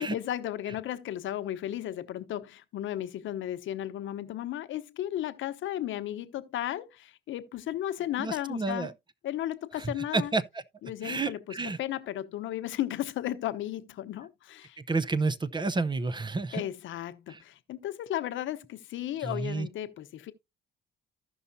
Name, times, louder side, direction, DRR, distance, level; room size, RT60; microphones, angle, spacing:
voice 1, 0.0-8.9 9.2-10.3 10.8-14.8 16.5-20.3, left 12 dB, 75° left, 0.9 m, -34 dB
voice 2, 8.2-8.9 9.8-10.4 11.0-11.8 14.9-16.7 17.3-17.4 19.2-19.7, right 3 dB, 25° right, 0.6 m, -30 dB
14.5 x 5.6 x 2.7 m
cardioid pair, 90°, 20 cm